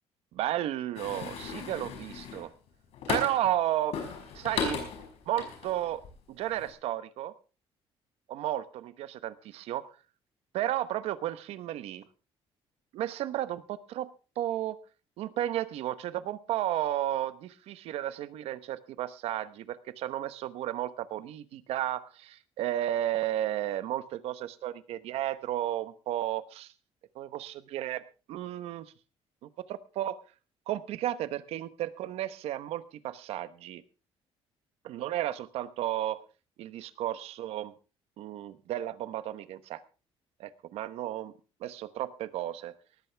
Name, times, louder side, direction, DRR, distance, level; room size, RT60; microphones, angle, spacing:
voice 1, 0.3-2.5 3.1-4.0 4.3-4.8 5.3-6.0 6.3-7.3 8.3-9.9 10.5-12.0 12.9-14.1 14.4-14.8 15.2-26.7 27.1-28.0 28.3-28.9 29.4-30.2 30.7-33.8 34.8-36.2 36.6-37.7 38.2-39.8 40.4-41.3 41.6-42.7, right 13 dB, 70° right, 14 dB, 1.1 m, -33 dB
sound 1, 1.0-3.5 3.9-6.1 6.4-6.7, left 6 dB, 65° left, 5.3 m, -36 dB
18.5 x 14.0 x 3.4 m, 0.34 s
cardioid pair, 175°, 11 cm